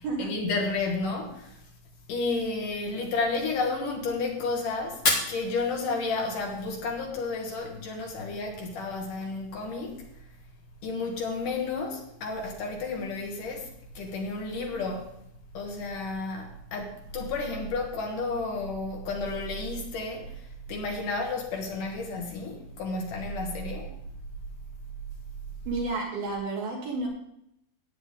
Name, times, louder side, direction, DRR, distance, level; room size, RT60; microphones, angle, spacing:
voice 1, 0.0-1.6 2.1-10.1 10.8-13.7 13.9-15.1 15.5-24.0, left 3 dB, 65° left, 2.9 m, -32 dB
Fire, 4.9-6.9, left 3 dB, 45° left, 1.3 m, -31 dB
voice 2, 25.7-27.1, right 3 dB, 70° right, 4.9 m, -31 dB
14.5 x 9.3 x 3.6 m
omnidirectional pair, 4.4 m